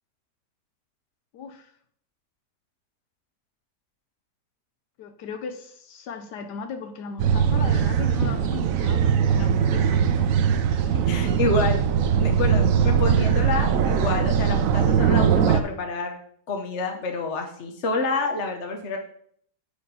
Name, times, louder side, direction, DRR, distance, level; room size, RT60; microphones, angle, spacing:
voice 1, 1.3-1.7 5.0-10.3, left 5 dB, 75° left, 1.3 m, -37 dB
sound 1, 7.2-15.6, right 7 dB, 65° right, 0.9 m, -21 dB
voice 2, 11.0-11.8 12.2-16.2 16.5-19.0, left 3 dB, 50° left, 1.1 m, -28 dB
8.0 x 5.1 x 5.4 m
omnidirectional pair, 1.8 m